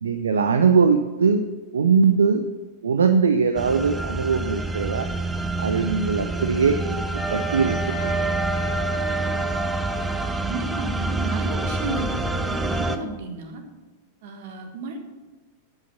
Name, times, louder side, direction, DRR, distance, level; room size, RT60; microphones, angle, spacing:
voice 1, 0.0-1.4 1.7-2.4 2.8-5.1 5.6-7.1 7.3-8.3, right 5 dB, 70° right, 8 dB, 0.5 m, -21 dB
sound 1, 3.6-13.0, right 2 dB, 10° right, 0.7 m, -27 dB
Wind instrument woodwind instrument, 7.1-10.3, right 2 dB, 20° left, 2.2 m, -30 dB
voice 2, 10.4-13.6 14.2-15.0, right 3 dB, 50° right, 5 dB, 1.6 m, -32 dB
12.0 x 5.7 x 5.7 m, 1.2 s
figure-of-eight pair, 90°, 0 cm